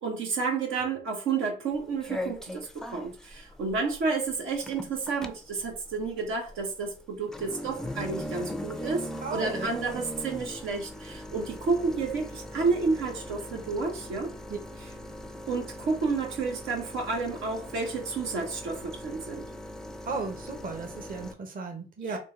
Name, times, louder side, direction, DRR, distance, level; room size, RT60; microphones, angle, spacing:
voice 1, 0.0-14.3 15.5-19.4 22.0-22.2, right 4 dB, 85° right, 1.0 m, -30 dB
sound 1, 1.7-21.3, left 1 dB, ahead, 0.4 m, -40 dB
voice 2, 9.2-10.0 14.5-14.6 20.1-22.2, right 4 dB, 45° right, 1.0 m, -35 dB
3.8 x 2.3 x 3.8 m
cardioid pair, 90°, 20 cm